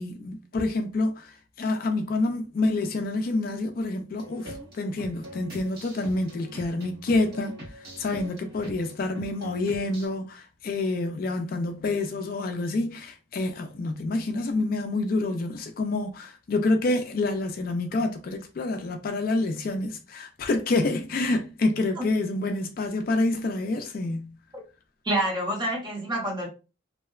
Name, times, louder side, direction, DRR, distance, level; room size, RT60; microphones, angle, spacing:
voice 1, 0.0-7.5 8.0-24.3, left 2 dB, 45° left, 0.3 m, -27 dB
sound 1, 4.2-10.1, right 1 dB, 50° right, 1.1 m, -43 dB
voice 2, 25.0-26.5, right 1 dB, 20° right, 0.8 m, -27 dB
2.7 x 2.1 x 2.3 m
head